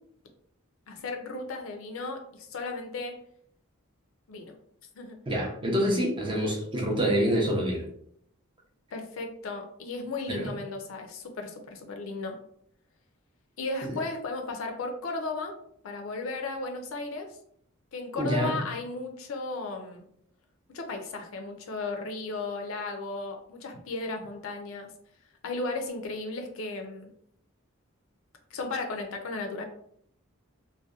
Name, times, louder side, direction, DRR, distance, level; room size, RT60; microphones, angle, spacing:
voice 1, 0.9-3.1 4.3-4.5 5.0-5.2 8.9-12.4 13.6-15.5 15.8-17.3 17.9-20.0 20.7-24.9 25.4-27.1 28.5-29.7, left 3 dB, 65° left, 4 dB, 0.4 m, -35 dB
voice 2, 5.3-7.8 10.3-10.5 18.2-18.5, equal, 25° right, -1 dB, 0.5 m, -26 dB
2.7 x 2.1 x 2.3 m, 0.68 s
head